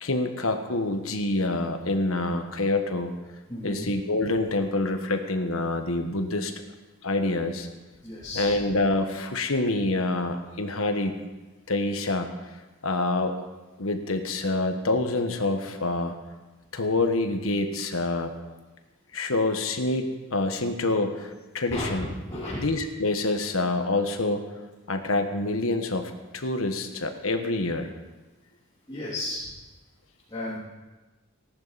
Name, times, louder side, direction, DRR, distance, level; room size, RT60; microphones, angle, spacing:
voice 1, 0.0-3.1 3.6-6.5 7.0-7.7 8.3-11.1 11.7-12.3 12.8-13.5 13.8-16.1 16.7-18.3 19.1-22.1 22.6-24.5 24.9-27.9, left 2 dB, 75° left, 6 dB, 1.4 m, -26 dB
voice 2, 3.5-3.9 8.0-8.5 21.7-21.9 22.2-22.6 28.9-29.4 30.3-30.6, left 1 dB, 20° left, -10 dB, 3.3 m, -33 dB
18.0 x 11.5 x 4.2 m, 1.2 s
head